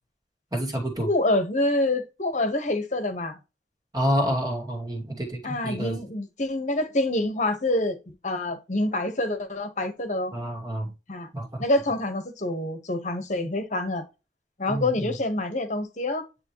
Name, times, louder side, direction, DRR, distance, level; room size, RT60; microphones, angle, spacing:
voice 1, 0.5-1.1 3.9-6.0 10.3-10.9 11.3-11.6 14.7-15.1, equal, 20° right, 2.4 m, -28 dB
voice 2, 1.0-3.4 5.4-10.3 11.1-11.3 11.6-14.1 14.6-16.3, left 1 dB, 40° left, 1.3 m, -26 dB
9.9 x 3.5 x 3.1 m
head